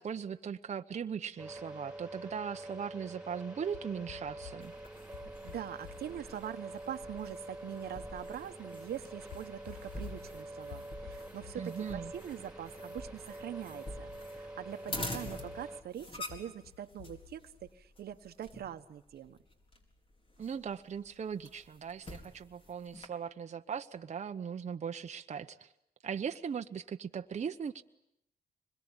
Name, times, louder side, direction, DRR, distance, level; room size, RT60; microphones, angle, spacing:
voice 1, 0.0-4.7 11.6-12.1 20.4-25.7 26.0-27.8, right 7 dB, 45° right, 7 dB, 0.9 m, -39 dB
sound 1, 1.4-15.8, right 1 dB, 5° right, 3.2 m, -46 dB
sound 2, 3.7-17.7, left 13 dB, 90° left, 0.9 m, -55 dB
sound 3, 4.6-23.1, left 1 dB, 35° left, 4.4 m, -48 dB
voice 2, 5.1-19.4, right 10 dB, 85° right, 9 dB, 1.2 m, -43 dB
25.0 x 22.0 x 9.8 m, 0.82 s
cardioid pair, 100°, 16 cm